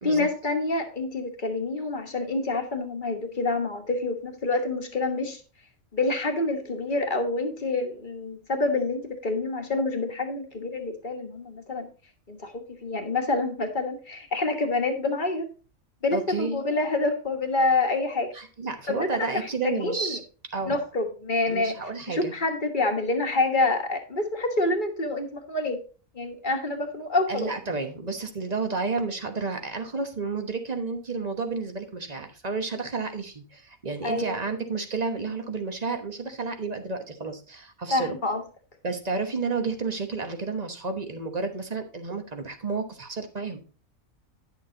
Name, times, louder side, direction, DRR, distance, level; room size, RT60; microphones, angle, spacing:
voice 1, 0.0-5.4 5.9-11.9 12.3-15.5 16.0-18.3 18.9-20.2 20.6-21.8 22.1-25.8 26.1-27.5 34.0-34.4 37.9-38.4, left 2 dB, 40° left, 4 dB, 1.4 m, -27 dB
voice 2, 16.1-16.6 18.3-20.2 20.5-20.8 21.5-22.3 27.3-38.2 38.8-43.6, right 4 dB, 30° right, 6 dB, 1.2 m, -31 dB
10.0 x 6.7 x 3.8 m, 0.36 s
omnidirectional pair, 1.4 m